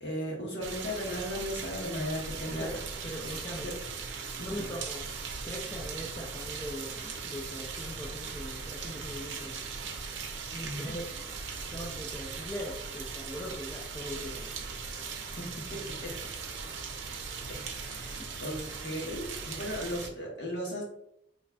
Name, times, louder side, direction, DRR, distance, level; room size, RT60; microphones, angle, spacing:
voice 1, 0.0-2.7 3.2-3.3 3.6-3.7 4.4-4.6 10.6-10.9 15.4-16.1 17.5-20.8, equal, 65° left, -2 dB, 1.3 m, -36 dB
sound 1, 0.6-20.1, right 5 dB, 85° right, 0.6 m, -39 dB
voice 2, 2.6-3.8 4.4-5.1 5.4-9.6 10.5-11.2 11.6-14.5 16.1-16.2, equal, 15° left, 0 dB, 0.4 m, -41 dB
3.9 x 3.2 x 2.2 m, 0.72 s
head